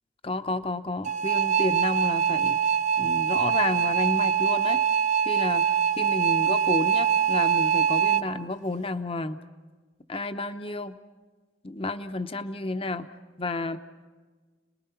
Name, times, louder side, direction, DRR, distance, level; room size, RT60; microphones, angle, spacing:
voice 1, 0.2-2.6 3.0-4.8 5.2-5.7 6.0-9.4 10.1-11.0 11.6-13.1 13.4-13.8, left 2 dB, 30° left, 10 dB, 0.8 m, -31 dB
sound 1, 1.0-8.2, right 8 dB, 40° right, 0.6 m, -23 dB
29.5 x 20.0 x 5.8 m, 1.4 s
head